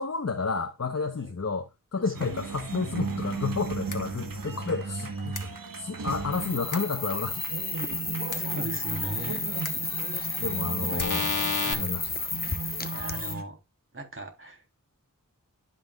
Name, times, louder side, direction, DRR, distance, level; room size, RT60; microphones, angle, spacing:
voice 1, 0.0-5.3 5.8-7.4 10.4-11.3 11.6-12.3, left 4 dB, 50° left, 1.0 m, -31 dB
voice 2, 2.0-2.3 8.4-9.5 10.1-10.4 10.9-11.1 11.6-11.9 12.9-13.6 13.9-14.8, right 1 dB, 40° right, 3.5 m, -39 dB
sound 1, 2.1-13.4, right 4 dB, 85° right, 1.4 m, -36 dB
sound 2, 3.9-4.0 5.4-5.5 6.7-6.8 8.3-8.4 9.6-9.7 11.0-11.7, left 4 dB, 70° left, 1.4 m, -29 dB
sound 3, 6.3-13.3, left 3 dB, 30° left, 1.0 m, -32 dB
12.0 x 5.9 x 2.4 m
wide cardioid pair, 75°, 33 cm